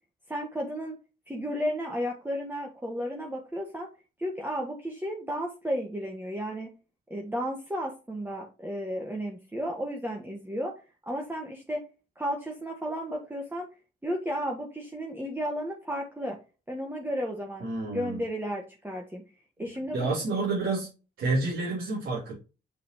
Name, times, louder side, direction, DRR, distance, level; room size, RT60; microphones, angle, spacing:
voice 1, 0.3-1.0 1.3-3.9 4.2-6.7 7.1-10.7 11.1-11.8 12.1-13.7 14.0-16.4 16.7-19.2 19.6-20.1, equal, 10° right, 0 dB, 1.4 m, -33 dB
voice 2, 17.6-18.2 19.6-20.9 21.2-22.3, right 3 dB, 80° right, -8 dB, 3.1 m, -29 dB
6.8 x 4.9 x 2.9 m, 0.32 s
cardioid pair, 60°, 20 cm